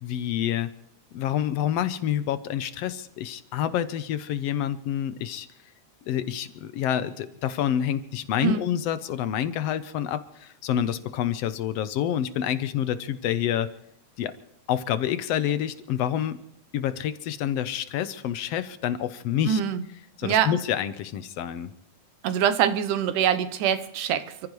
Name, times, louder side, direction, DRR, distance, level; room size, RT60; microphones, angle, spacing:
voice 1, 0.0-0.7 1.1-5.5 6.1-13.7 14.2-14.3 14.7-16.4 16.7-19.6 20.2-21.7, left 10 dB, 70° left, 1.6 m, -28 dB
voice 2, 19.5-19.8 20.2-20.6 22.2-24.5, right 9 dB, 85° right, 2.5 m, -24 dB
28.0 x 15.0 x 3.2 m
omnidirectional pair, 3.5 m